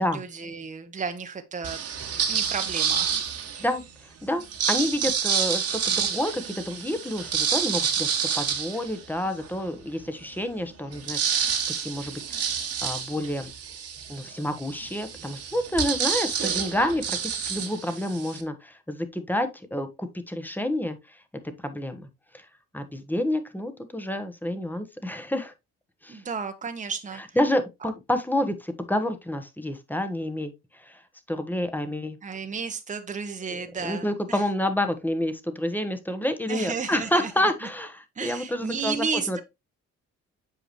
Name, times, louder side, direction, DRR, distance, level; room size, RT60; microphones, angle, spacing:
voice 1, 0.0-1.8 2.3-3.2 26.1-27.4 27.8-27.9 32.2-34.4 36.5-37.5 38.2-39.4, right 5 dB, 25° right, 1.0 m, -33 dB
sound 1, 1.6-3.8 4.4-9.6 10.1-10.2 10.4-18.4, right 7 dB, 55° right, 1.5 m, -28 dB
voice 2, 3.6-12.5 12.8-13.5 14.1-21.2 21.6-22.1 22.3-22.4 22.7-25.5 26.0-26.2 27.4-31.0 31.3-32.2 33.5-39.4, left 1 dB, 5° left, 1.1 m, -29 dB
7.9 x 4.8 x 3.1 m
cardioid pair, 90°, 30 cm